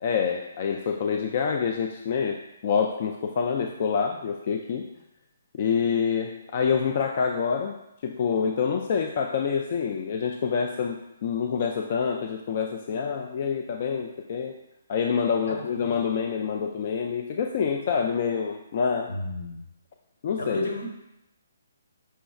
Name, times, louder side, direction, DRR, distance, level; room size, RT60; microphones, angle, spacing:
voice 1, 0.0-4.9 5.5-7.8 8.0-14.5 14.9-19.1 20.2-20.7, left 6 dB, 45° left, 3 dB, 0.3 m, -27 dB
voice 2, 15.5-15.9 19.1-19.6 20.4-20.9, left 1 dB, 85° left, -1 dB, 1.3 m, -33 dB
5.5 x 4.1 x 2.3 m, 0.84 s
hypercardioid pair, 155°, 0 cm